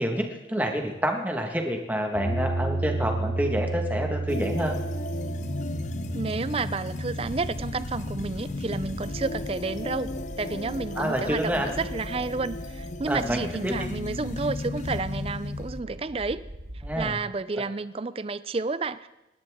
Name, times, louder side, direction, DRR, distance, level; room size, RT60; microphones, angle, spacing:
voice 1, 0.0-4.8 10.9-11.7 13.1-13.9 16.8-17.2, equal, 10° right, 2 dB, 1.6 m, -28 dB
sound 1, 2.1-12.4, right 2 dB, 80° left, 5.1 m, -34 dB
sound 2, 4.3-15.8, left 3 dB, 40° left, 0.5 m, -35 dB
voice 2, 6.1-10.1 10.4-16.4 17.0-19.1, right 3 dB, 30° right, 15 dB, 0.4 m, -31 dB
sound 3, 7.2-17.1, right 1 dB, 55° right, 1.8 m, -42 dB
25.5 x 12.0 x 3.7 m, 0.96 s
head